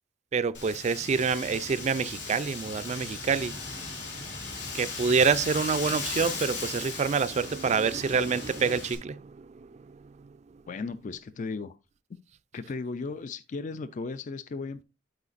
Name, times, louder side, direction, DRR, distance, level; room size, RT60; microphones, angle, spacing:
voice 1, 0.3-3.5 4.7-10.3, right 5 dB, 35° right, 0.3 m, -27 dB
Wind, 0.5-8.9, left 4 dB, 65° left, 3.4 m, -37 dB
voice 2, 10.7-11.8 12.5-14.8, left 4 dB, 40° left, 0.4 m, -36 dB
12.0 x 4.9 x 2.5 m
head